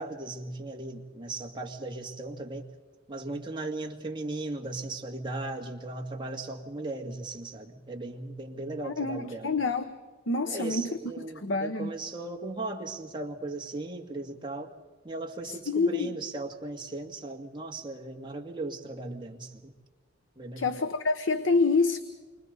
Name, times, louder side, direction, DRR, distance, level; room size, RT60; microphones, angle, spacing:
voice 1, 0.0-2.7 3.1-9.5 10.5-14.7 15.0-19.7 20.4-20.7, right 2 dB, 25° right, 1 dB, 2.1 m, -37 dB
voice 2, 8.8-10.0 10.3-12.0 15.5-16.1 20.6-22.0, left 3 dB, 80° left, 9 dB, 1.0 m, -27 dB
29.5 x 25.0 x 4.0 m, 1.4 s
head